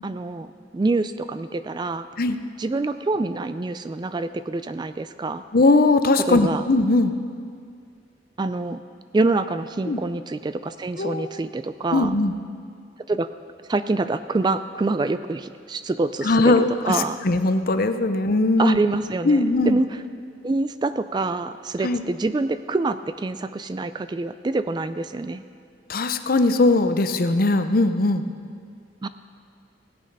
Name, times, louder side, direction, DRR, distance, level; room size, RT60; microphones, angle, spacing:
voice 1, 0.0-2.1 2.6-5.4 6.3-6.6 8.4-8.8 9.1-12.1 13.1-13.3 13.7-17.2 18.6-20.0 20.4-25.4 29.0-29.1, right 3 dB, 25° right, 12 dB, 0.3 m, -26 dB
voice 2, 5.5-7.1 9.9-10.0 11.0-11.3 11.9-12.3 16.2-18.8 19.2-19.8 21.8-22.0 25.9-28.3, left 2 dB, 55° left, 9 dB, 0.6 m, -20 dB
17.0 x 8.8 x 5.4 m, 2.2 s
head